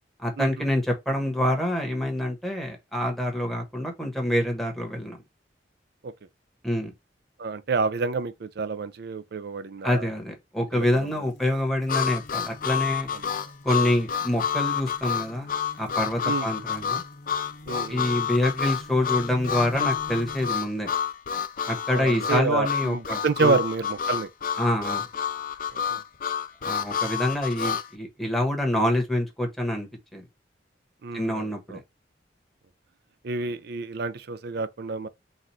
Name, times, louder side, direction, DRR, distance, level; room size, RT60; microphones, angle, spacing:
voice 1, 0.2-5.2 6.6-6.9 9.8-13.1 13.6-17.0 17.9-20.9 21.7-23.6 24.6-25.1 26.6-30.2 31.1-31.8, left 1 dB, ahead, 1.3 m, -26 dB
voice 2, 7.4-10.1 10.7-11.2 13.1-13.2 13.8-13.9 16.2-16.5 17.7-18.1 21.9-24.3 25.7-26.0 31.0-31.8 33.2-35.1, right 4 dB, 65° right, 0.5 m, -29 dB
sound 1, 10.8-20.5, left 1 dB, 75° left, 1.1 m, -46 dB
Harmonica, 11.9-27.9, left 8 dB, 50° left, 0.5 m, -29 dB
4.1 x 2.6 x 4.5 m
head